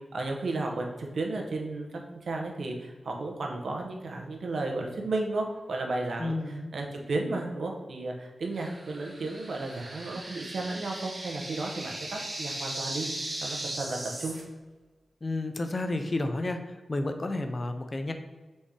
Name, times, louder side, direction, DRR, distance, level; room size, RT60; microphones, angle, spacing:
voice 1, 0.1-13.1 13.4-14.4, right 2 dB, 80° right, 1 dB, 0.7 m, -33 dB
voice 2, 6.2-6.7 15.2-16.6 16.9-18.1, left 2 dB, 40° left, 7 dB, 0.5 m, -31 dB
sound 1, 8.5-14.4, right 1 dB, 55° right, 1.1 m, -38 dB
4.1 x 3.3 x 3.6 m, 1.3 s
cardioid pair, 55°, 0 cm